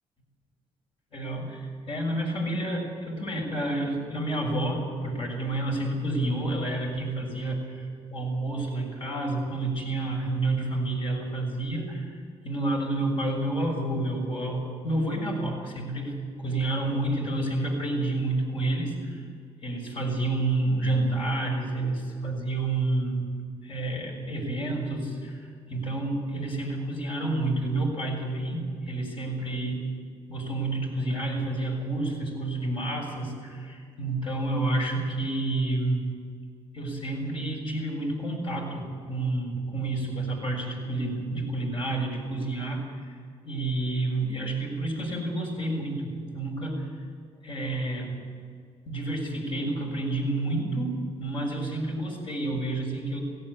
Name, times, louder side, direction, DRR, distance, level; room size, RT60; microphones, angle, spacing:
voice 1, 1.1-19.2 19.6-23.3 23.6-29.9 30.3-36.1 36.7-46.9 47.4-48.2 48.9-53.2, right 2 dB, 50° left, 1 dB, 6.5 m, -29 dB
17.5 x 16.0 x 10.0 m, 2.1 s
cardioid pair, 110°, 12 cm